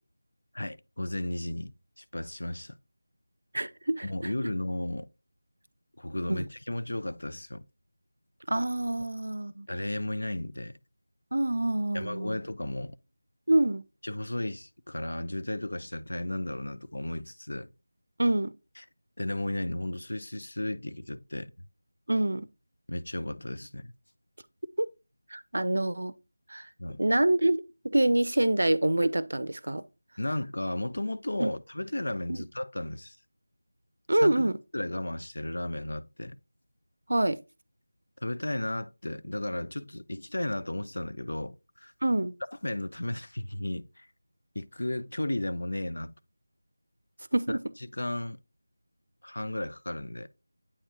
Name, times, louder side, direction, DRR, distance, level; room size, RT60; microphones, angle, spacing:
voice 1, 0.5-2.8 4.0-5.1 6.0-7.6 9.7-10.8 11.9-13.0 14.0-17.7 19.2-21.5 22.9-23.9 26.8-27.0 30.2-33.2 34.1-36.4 38.2-41.9 42.6-44.1 44.6-46.1 47.5-48.4 49.2-50.3, left 1 dB, 65° left, 0.5 m, -34 dB
voice 2, 3.5-4.3 6.3-6.5 8.5-9.7 11.3-12.4 13.5-13.8 18.2-18.5 22.1-22.5 24.8-24.9 25.3-26.1 26.5-26.7 27.0-29.8 31.4-31.5 32.3-32.4 34.1-34.6 37.1-37.4 42.0-42.3 47.3-47.7, right 1 dB, 65° right, 0.5 m, -26 dB
8.5 x 4.6 x 2.7 m
figure-of-eight pair, 170°, 0 cm